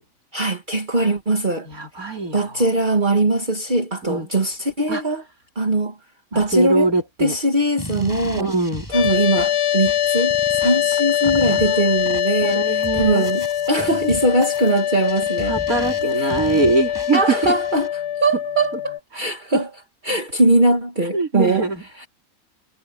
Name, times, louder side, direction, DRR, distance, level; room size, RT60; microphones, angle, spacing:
voice 1, 0.3-1.7 2.3-5.2 5.6-6.0 6.3-6.9 7.2-8.5 8.9-15.6 16.2-16.4 17.1-19.7 20.0-21.7 21.9-22.1, right 2 dB, 35° right, 2.1 m, -21 dB
voice 2, 1.7-2.6 4.0-4.3 4.9-5.0 6.3-7.3 8.2-8.8 11.5-11.8 12.4-13.3 15.5-17.5 18.7-18.8 21.1-21.8, right 3 dB, 85° right, 4.7 m, -23 dB
sound 1, 7.8-17.9, equal, 15° left, 7.2 m, -36 dB
sound 2, 8.9-19.0, left 11 dB, 60° left, 0.8 m, -23 dB
omnidirectional pair, 1.5 m